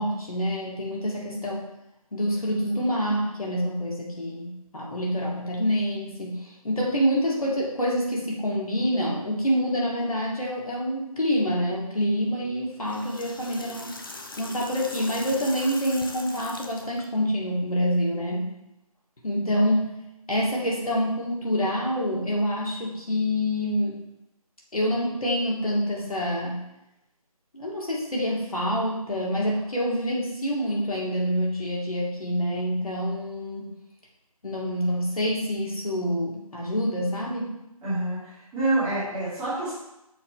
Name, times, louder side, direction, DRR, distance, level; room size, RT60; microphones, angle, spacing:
voice 1, 0.0-1.6 2.1-14.0 14.4-18.5 19.2-20.0 20.3-24.0 24.7-26.6 27.5-33.7 34.4-37.5, equal, 70° left, -3 dB, 2.2 m, -27 dB
sound 1, 12.7-17.0, left 2 dB, 35° left, 0.6 m, -40 dB
voice 2, 37.8-39.7, right 2 dB, 5° right, -12 dB, 1.4 m, -27 dB
6.3 x 4.2 x 4.6 m, 0.89 s
figure-of-eight pair, 155°, 19 cm